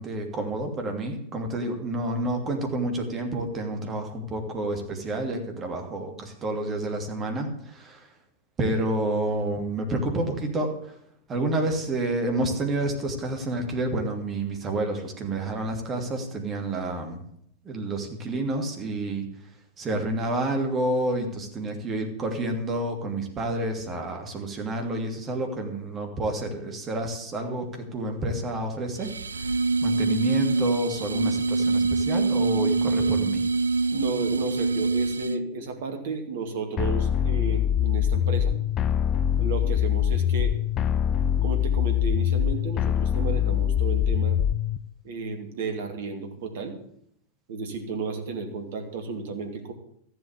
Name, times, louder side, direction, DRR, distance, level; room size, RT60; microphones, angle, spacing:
voice 1, 0.0-8.1 8.6-10.9 11.3-17.2 17.6-19.3 19.8-29.5 29.8-33.4, right 1 dB, 25° right, 4 dB, 2.9 m, -29 dB
sound 1, 29.0-35.5, right 3 dB, 75° right, 0.5 m, -25 dB
voice 2, 33.9-38.6 39.4-40.5 41.4-44.4 45.0-46.8 47.5-49.7, right 4 dB, 55° right, 5 dB, 2.5 m, -33 dB
sound 2, 36.8-44.8, left 10 dB, 30° left, 0.5 m, -24 dB
14.0 x 8.0 x 8.2 m, 0.68 s
figure-of-eight pair, 90°, 0 cm